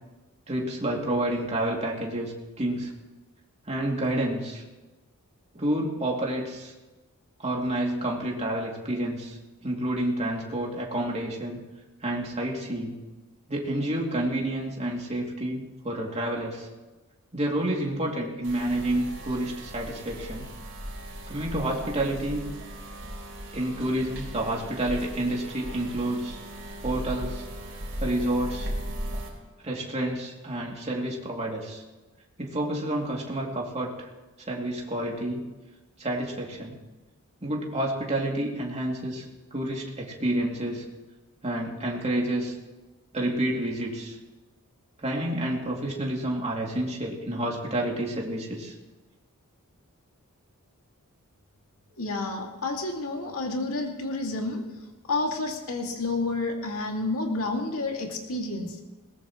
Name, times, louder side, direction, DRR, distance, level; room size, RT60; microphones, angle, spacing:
voice 1, 0.5-2.9 3.6-4.6 5.5-6.7 7.4-11.6 12.0-12.9 13.5-16.7 17.3-20.4 21.3-22.5 23.5-26.4 26.8-27.5 28.0-28.7 29.6-31.8 32.4-34.1 34.4-35.4 36.0-36.8 37.4-39.3 39.5-40.8 41.4-42.5 43.1-44.2 45.0-48.7, right 1 dB, 30° right, -2 dB, 2.8 m, -29 dB
sound 1, 18.4-29.3, equal, 60° right, 4.1 m, -37 dB
voice 2, 51.9-54.6 55.1-58.8, left 2 dB, 70° left, 1 dB, 2.4 m, -30 dB
21.0 x 19.0 x 3.2 m, 1.1 s
head